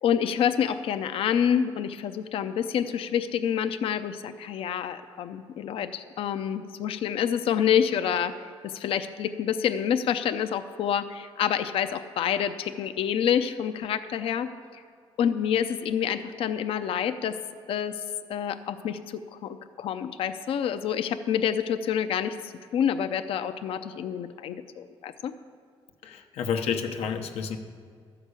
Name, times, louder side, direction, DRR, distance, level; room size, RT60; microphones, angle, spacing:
voice 1, 0.0-8.3 8.6-14.5 15.2-17.4 17.7-17.9 18.3-25.3, left 8 dB, 65° left, 9 dB, 0.5 m, -27 dB
voice 2, 26.0-27.6, left 7 dB, 90° left, 4 dB, 1.0 m, -30 dB
13.0 x 5.9 x 8.2 m, 2.2 s
cardioid pair, 140°, 10 cm